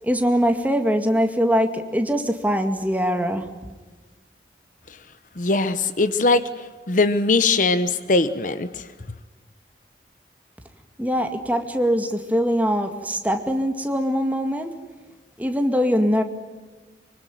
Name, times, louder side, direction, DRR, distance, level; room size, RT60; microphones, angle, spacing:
voice 1, 0.0-3.5 11.0-14.7 15.4-16.2, equal, 10° right, 6 dB, 2.1 m, -22 dB
voice 2, 5.4-8.9, left 3 dB, 45° left, 13 dB, 1.0 m, -21 dB
25.0 x 24.5 x 9.2 m, 1.3 s
head